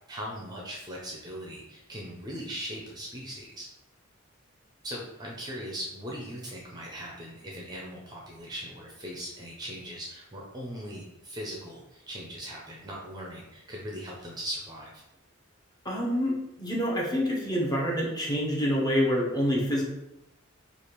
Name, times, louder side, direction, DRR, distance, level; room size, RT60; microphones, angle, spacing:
voice 1, 0.1-3.7 4.8-15.0, equal, 20° right, -2 dB, 0.5 m, -39 dB
voice 2, 15.8-19.8, equal, 20° left, -3 dB, 0.8 m, -27 dB
3.3 x 2.4 x 4.4 m, 0.88 s
head